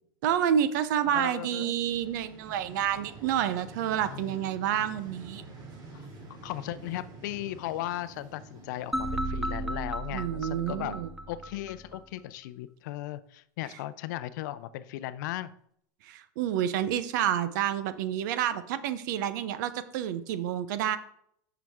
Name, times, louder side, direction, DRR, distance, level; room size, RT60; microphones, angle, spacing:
voice 1, 0.2-5.4 10.1-11.1 16.0-21.0, right 10 dB, 70° right, 13 dB, 0.7 m, -29 dB
voice 2, 1.1-1.8 4.1-4.4 5.9-6.1 6.4-11.0 11.3-15.6, left 14 dB, 70° left, 14 dB, 0.5 m, -37 dB
Vehicle, 1.5-10.5, right 2 dB, 40° right, 2.5 m, -48 dB
sound 1, 8.9-12.0, right 1 dB, ahead, 0.5 m, -34 dB
8.7 x 6.0 x 3.6 m, 0.68 s
supercardioid pair, 135°, 10 cm